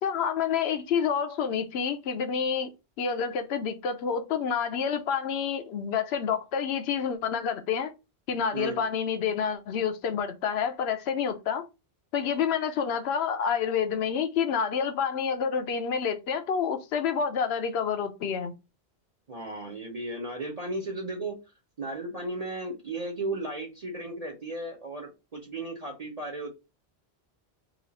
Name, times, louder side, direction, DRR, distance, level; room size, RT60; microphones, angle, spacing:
voice 1, 0.0-2.7 3.0-7.9 8.3-11.7 12.1-18.5, left 7 dB, 80° left, 0.9 m, -28 dB
voice 2, 19.3-21.4 21.8-26.5, right 2 dB, 40° right, 0.8 m, -35 dB
3.0 x 2.4 x 4.0 m
omnidirectional pair, 1.1 m